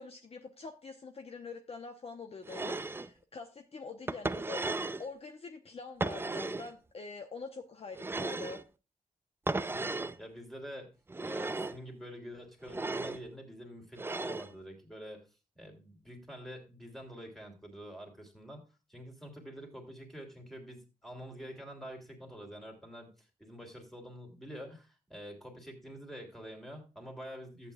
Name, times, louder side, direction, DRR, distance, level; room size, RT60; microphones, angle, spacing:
voice 1, 0.0-4.7 5.0-8.6, left 4 dB, 40° left, 5 dB, 0.9 m, -45 dB
sound 1, 2.5-3.1 4.1-5.1 6.0-6.7 8.0-8.6 9.5-10.2 11.1-11.8 12.7-13.2 14.0-14.5, right 3 dB, 15° right, 0.4 m, -35 dB
voice 2, 9.7-10.9 11.2-15.3 15.6-18.6 18.9-27.7, equal, ahead, 2 dB, 2.9 m, -47 dB
14.0 x 8.5 x 2.3 m, 0.31 s
wide cardioid pair, 140°, 15 cm